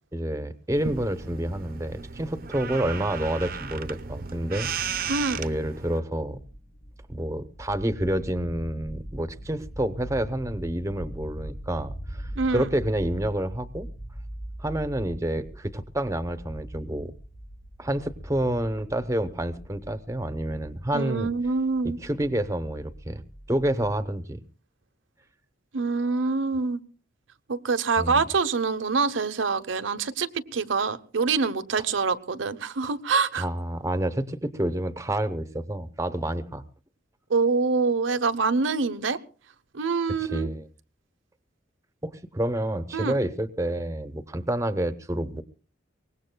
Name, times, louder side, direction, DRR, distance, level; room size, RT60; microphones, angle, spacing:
voice 1, 0.1-4.7 5.3-6.4 7.1-13.9 14.6-17.1 17.8-21.3 22.0-23.2 23.5-24.4 28.0-28.2 33.3-36.6 40.1-40.7 42.0-45.4, right 1 dB, 15° right, 12 dB, 0.8 m, -28 dB
sound 1, 0.7-6.0, right 6 dB, 50° right, 0.7 m, -35 dB
voice 2, 5.1-5.4 12.4-12.7 20.9-22.0 25.7-26.8 27.5-33.5 37.3-39.2 39.7-40.5 42.9-43.2, right 4 dB, 85° right, 9 dB, 0.8 m, -25 dB
sound 2, 6.3-24.0, equal, 85° left, 3.7 m, -41 dB
23.5 x 19.5 x 2.2 m, 0.38 s
head